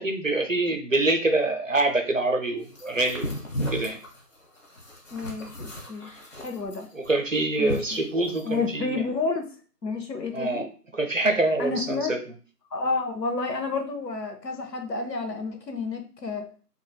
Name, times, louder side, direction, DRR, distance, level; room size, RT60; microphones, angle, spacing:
voice 1, 0.0-3.3 3.7-4.0 6.9-9.0 10.3-10.7 10.9-12.2, right 2 dB, 55° right, 5 dB, 0.5 m, -25 dB
sound 1, 2.7-8.5, equal, 50° left, 0.9 m, -35 dB
voice 2, 5.1-6.1 6.4-6.9 7.6-7.8 8.4-9.5 9.8-10.7 11.6-12.1 12.7-16.5, left 3 dB, 80° left, 5 dB, 0.8 m, -30 dB
3.2 x 2.5 x 2.2 m, 0.39 s
figure-of-eight pair, 165°, 48 cm